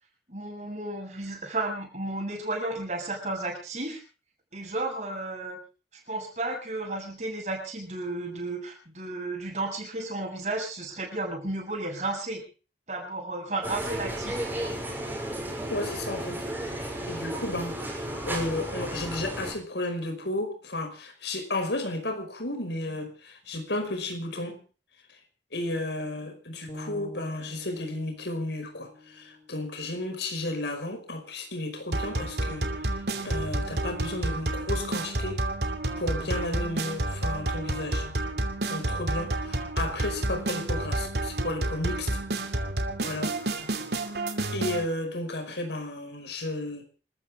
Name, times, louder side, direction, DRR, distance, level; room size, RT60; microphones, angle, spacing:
voice 1, 0.3-4.0 4.5-5.6 6.1-12.4 12.9-14.8, right 2 dB, 40° right, 2 dB, 7.6 m, -33 dB
sound 1, 13.6-19.5, right 1 dB, 10° right, 6.6 m, -33 dB
voice 2, 15.7-24.6 25.5-32.7 33.2-35.4 36.0-38.1 38.7-42.2 43.0-43.4 44.5-46.8, left 2 dB, 75° left, 7 dB, 5.3 m, -33 dB
sound 2, 26.7-30.8, left 1 dB, 35° left, 6.3 m, -46 dB
sound 3, 31.9-44.8, right 1 dB, 65° right, 2.6 m, -30 dB
28.0 x 14.0 x 3.6 m, 0.37 s
head